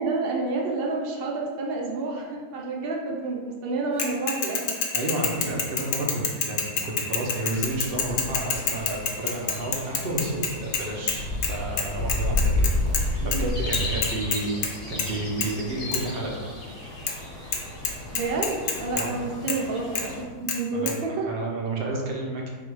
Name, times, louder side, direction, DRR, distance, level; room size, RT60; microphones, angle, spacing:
voice 1, 0.0-4.8 13.2-13.5 18.1-21.2, right 3 dB, 85° right, -1 dB, 0.5 m, -29 dB
Bicycle / Mechanisms, 4.0-11.2 11.4-11.5 11.8-13.0 13.3-13.4 13.7-14.7 15.0-15.1 15.4-15.5 15.9-16.0 17.1-17.2 17.5-17.6 17.8-19.0 19.5-19.6 19.9-20.1 20.5-20.6 20.9-21.0, left 6 dB, 65° left, 0.8 m, -27 dB
voice 2, 4.9-6.2 6.5-12.7 13.2-16.4 18.9-19.2 20.7-20.9 21.2-22.5, right 2 dB, 50° right, -1 dB, 0.7 m, -31 dB
sound 1, 7.5-20.2, left 1 dB, 35° left, 1.3 m, -31 dB
3.9 x 2.5 x 4.6 m, 1.5 s
omnidirectional pair, 1.7 m